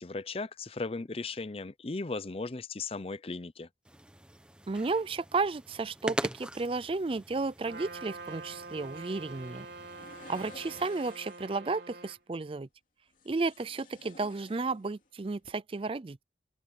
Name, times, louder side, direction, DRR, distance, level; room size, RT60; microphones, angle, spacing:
voice 1, 0.0-3.7, left 3 dB, 35° left, 0.6 m, -37 dB
sound 1, 3.8-10.9, right 1 dB, 5° right, 1.1 m, -43 dB
voice 2, 4.7-9.7 10.3-12.7 13.3-16.2, right 3 dB, 30° right, 0.4 m, -33 dB
Trumpet, 7.6-12.2, right 3 dB, 70° right, 3.7 m, -45 dB
sound 2, 9.9-11.5 13.1-15.1 15.4-15.5, left 2 dB, 50° left, 3.1 m, -53 dB
head